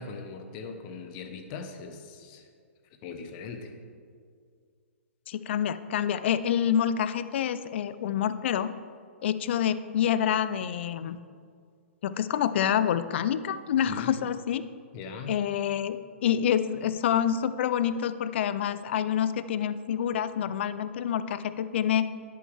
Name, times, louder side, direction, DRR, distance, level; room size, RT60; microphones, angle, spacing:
voice 1, 0.0-2.5 3.0-3.7 13.8-14.2 14.9-15.4, left 4 dB, 40° left, 6 dB, 1.1 m, -40 dB
voice 2, 5.3-8.7 9.2-11.2 12.0-14.6 15.3-16.0 16.2-22.1, left 9 dB, 55° left, 13 dB, 0.5 m, -27 dB
11.0 x 8.6 x 3.5 m, 2.1 s
hypercardioid pair, 125°, 7 cm